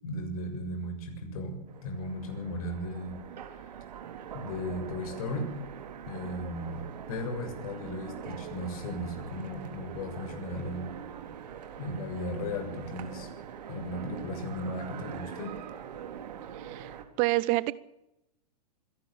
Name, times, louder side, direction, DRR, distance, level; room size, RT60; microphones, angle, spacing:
voice 1, 0.0-3.1 4.3-5.6 6.1-10.9 11.8-13.3 13.7-15.5, left 1 dB, 60° left, 6 dB, 7.0 m, -36 dB
Train, 1.7-17.0, right 8 dB, 75° right, 3.6 m, -43 dB
voice 2, 16.6-17.7, right 21 dB, 35° right, 19 dB, 0.8 m, -28 dB
25.5 x 12.0 x 8.8 m, 0.88 s
hypercardioid pair, 130°, 21 cm